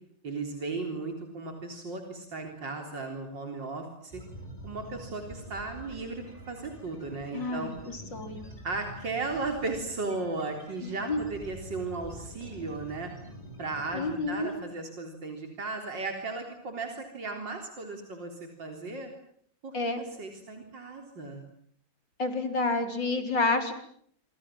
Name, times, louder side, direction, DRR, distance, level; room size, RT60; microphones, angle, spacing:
voice 1, 0.2-4.2 4.6-7.7 8.6-13.1 13.6-19.1 19.6-21.4, right 3 dB, 90° right, 4 dB, 4.5 m, -36 dB
sound 1, 4.1-14.6, equal, 20° left, 7.2 m, -46 dB
voice 2, 7.3-8.5 10.8-11.2 13.9-14.5 19.7-20.0 22.2-23.7, left 3 dB, 85° left, 7 dB, 5.0 m, -29 dB
27.5 x 26.5 x 7.6 m, 0.64 s
omnidirectional pair, 1.9 m